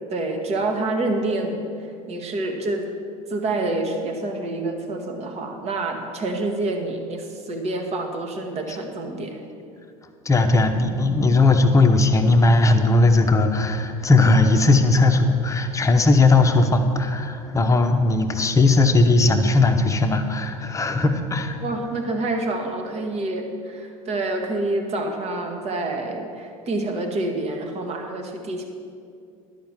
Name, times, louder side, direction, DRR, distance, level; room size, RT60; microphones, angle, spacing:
voice 1, 0.1-2.9 3.3-9.4 21.6-28.6, right 2 dB, 35° right, 4 dB, 1.6 m, -27 dB
voice 2, 10.2-21.6, left 2 dB, 15° left, 5 dB, 1.0 m, -18 dB
12.0 x 5.9 x 7.3 m, 2.4 s
figure-of-eight pair, 70°, 18 cm